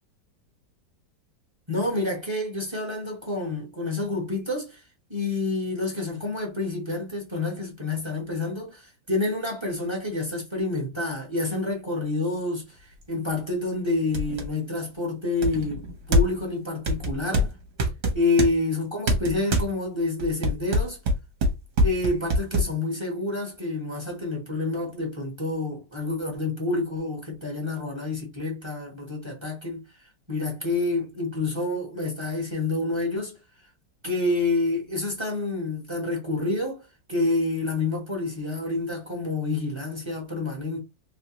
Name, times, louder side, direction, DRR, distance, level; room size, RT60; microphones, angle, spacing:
voice 1, 1.7-4.8 5.1-17.5 18.1-21.0 21.8-29.8 30.3-33.3 34.0-40.8, left 2 dB, 20° right, 0.9 m, -28 dB
sound 1, 13.0-13.1 13.6-13.7 14.1-14.5 15.4-16.5 16.9-18.5 19.1-19.7 20.2-22.7, equal, 50° right, 1.2 m, -24 dB
3.3 x 2.7 x 2.9 m
omnidirectional pair, 2.1 m